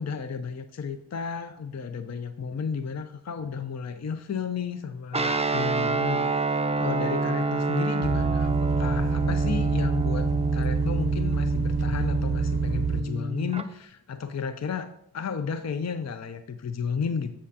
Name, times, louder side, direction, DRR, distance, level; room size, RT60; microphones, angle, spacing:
voice 1, 0.0-14.9 15.1-17.3, left 6 dB, 40° left, 9 dB, 0.5 m, -33 dB
Guitar, 5.1-13.6, right 2 dB, 15° right, 0.4 m, -27 dB
sound 1, 8.0-13.0, right 7 dB, 65° right, 0.6 m, -27 dB
7.4 x 7.3 x 2.8 m, 0.73 s
wide cardioid pair, 55°, 40 cm